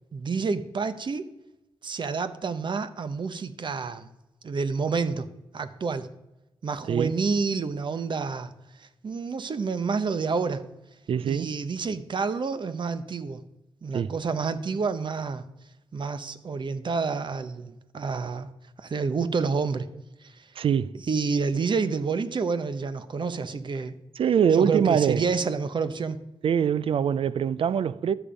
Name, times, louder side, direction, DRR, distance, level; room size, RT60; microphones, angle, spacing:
voice 1, 0.1-1.3 1.8-4.1 4.4-5.3 5.5-6.1 6.6-8.5 8.8-10.6 11.2-13.4 13.8-15.4 15.9-18.5 18.8-19.9 20.2-20.5 21.1-24.0 24.5-26.2, right 5 dB, 55° right, 0.8 m, -29 dB
voice 2, 11.1-11.5 13.9-14.1 20.6-21.0 24.2-25.2 26.4-28.1, right 8 dB, 70° right, 0.4 m, -23 dB
12.5 x 7.0 x 5.0 m
cardioid pair, 70°, 9 cm